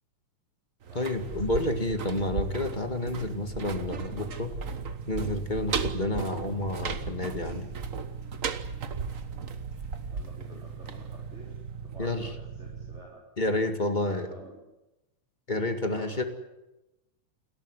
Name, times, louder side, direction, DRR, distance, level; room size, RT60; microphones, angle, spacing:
sound 1, 0.8-11.6 11.9-12.0, right 5 dB, 85° right, 0.7 m, -36 dB
voice 1, 0.9-4.5 5.1-7.7 12.0-12.3 13.4-14.3 15.5-16.2, left 2 dB, 20° left, 6 dB, 1.4 m, -30 dB
sound 2, 1.1-13.0, right 5 dB, 45° right, 1.3 m, -40 dB
voice 2, 10.1-13.3 13.9-14.6 15.9-16.3, right 3 dB, 20° right, -3 dB, 4.6 m, -50 dB
29.0 x 14.0 x 9.8 m, 0.97 s
omnidirectional pair, 3.6 m